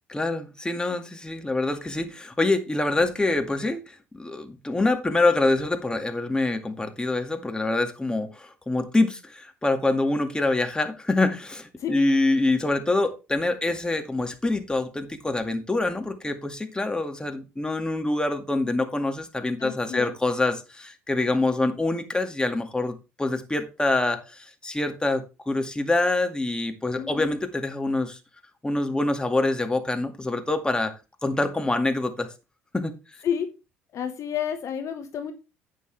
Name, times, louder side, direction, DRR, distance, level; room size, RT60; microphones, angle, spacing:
voice 1, 0.1-28.2 28.6-30.9 31.2-32.3 32.7-32.9, left 2 dB, 15° left, 2.1 m, -25 dB
voice 2, 11.8-12.2 19.6-20.1 26.9-27.3 33.2-33.5 33.9-35.3, left 8 dB, 50° left, 1.2 m, -30 dB
11.5 x 8.4 x 3.4 m
hypercardioid pair, 55°, 7 cm